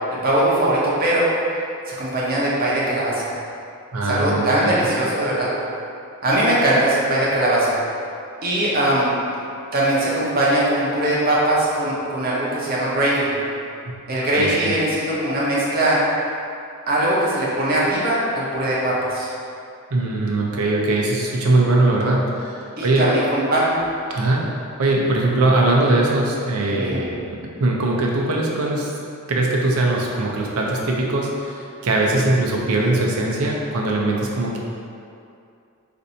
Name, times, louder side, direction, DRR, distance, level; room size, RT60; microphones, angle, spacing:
voice 1, 0.2-1.3 1.9-3.3 4.0-5.5 6.2-7.8 8.4-9.1 9.7-13.3 14.1-16.0 16.9-19.3 22.8-23.7 26.8-27.0, right 1 dB, 40° right, -6 dB, 0.7 m, -20 dB
voice 2, 3.9-4.9 14.3-14.7 19.9-23.1 24.1-24.4 24.8-27.2 27.6-28.9 29.3-34.6, right 2 dB, 80° right, -2 dB, 0.5 m, -21 dB
4.2 x 2.6 x 2.6 m, 2.5 s
head